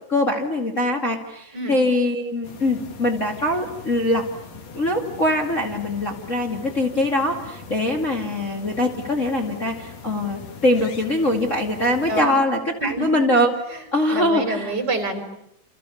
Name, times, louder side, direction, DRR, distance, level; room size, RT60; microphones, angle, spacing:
voice 1, 0.1-4.3 4.7-13.5 13.9-14.7, left 1 dB, 75° left, 0 dB, 0.7 m, -22 dB
sound 1, 2.4-12.2, left 5 dB, 45° left, 2.4 m, -41 dB
voice 2, 14.1-15.2, right 2 dB, 20° right, 6 dB, 4.0 m, -27 dB
29.0 x 28.5 x 7.1 m, 0.77 s
omnidirectional pair, 5.7 m